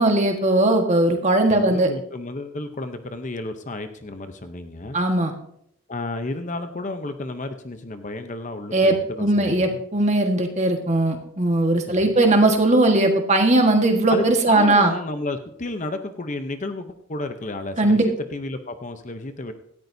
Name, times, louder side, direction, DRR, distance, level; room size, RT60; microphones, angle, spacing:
voice 1, 0.0-1.9 4.9-5.3 8.7-14.9 17.8-18.0, right 2 dB, 30° right, 4 dB, 1.5 m, -19 dB
voice 2, 1.5-5.0 5.9-9.8 11.9-12.1 14.1-19.5, left 2 dB, 35° left, 8 dB, 0.7 m, -32 dB
17.5 x 13.5 x 2.7 m, 0.71 s
head